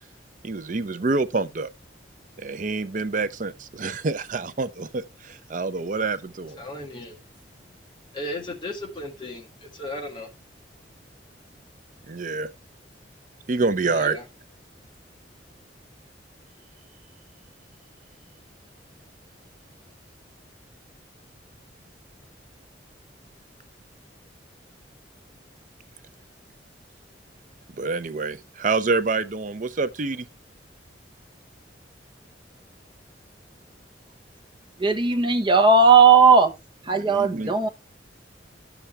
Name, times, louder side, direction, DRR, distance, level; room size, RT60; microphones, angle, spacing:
voice 1, 0.4-1.7 2.4-6.6 12.1-12.5 13.5-14.2 27.8-30.3 36.9-37.6, right 3 dB, 45° right, 0.6 m, -27 dB
voice 2, 6.6-7.2 8.1-10.3 13.8-14.2, left 1 dB, 25° left, 2.3 m, -35 dB
voice 3, 34.8-36.5 36.9-37.7, right 4 dB, 25° right, 1.1 m, -16 dB
11.0 x 7.1 x 3.3 m
head